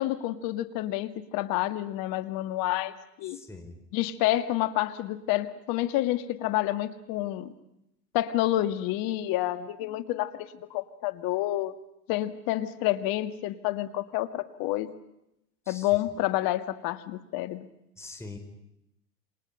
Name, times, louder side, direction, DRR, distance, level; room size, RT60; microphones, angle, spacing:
voice 1, 0.0-3.4 3.9-7.5 8.1-11.7 12.1-14.9 15.7-17.7, left 15 dB, 45° left, 11 dB, 1.9 m, -29 dB
voice 2, 3.3-3.8 15.7-15.9 18.0-18.4, left 3 dB, 5° left, 5 dB, 4.2 m, -43 dB
28.5 x 26.0 x 5.6 m, 0.84 s
hypercardioid pair, 115°, 49 cm